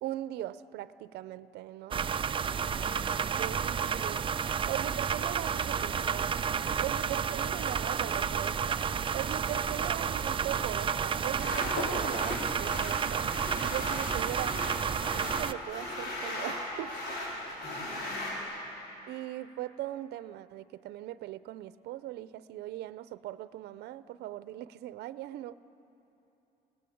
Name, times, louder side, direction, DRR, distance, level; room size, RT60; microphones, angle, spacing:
voice 1, 0.0-2.0 3.4-4.3 4.7-8.8 9.1-13.3 13.6-14.6 15.1-16.9 19.1-25.5, right 14 dB, 75° right, 15 dB, 0.7 m, -39 dB
sound 1, 1.9-15.5, right 7 dB, 30° right, 0.6 m, -31 dB
voice 2, 2.5-3.1 17.6-18.4, left 1 dB, 60° left, 0 dB, 7.7 m, -49 dB
sound 2, 9.3-18.4, left 1 dB, 80° left, 6.0 m, -38 dB
28.5 x 19.0 x 8.6 m, 3.0 s
cardioid pair, 110°, 17 cm